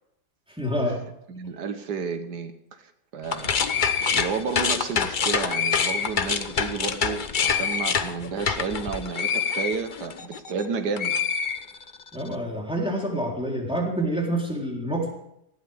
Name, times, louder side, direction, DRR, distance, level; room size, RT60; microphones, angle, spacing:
voice 1, 0.5-1.0 12.1-15.1, right 1 dB, 5° right, -1 dB, 3.7 m, -27 dB
voice 2, 1.3-3.6 4.1-11.1, right 5 dB, 80° right, 8 dB, 1.8 m, -31 dB
sound 1, 3.2-10.7 11.0-12.1, left 6 dB, 40° left, 0.8 m, -26 dB
19.5 x 15.0 x 3.6 m, 0.78 s
omnidirectional pair, 1.7 m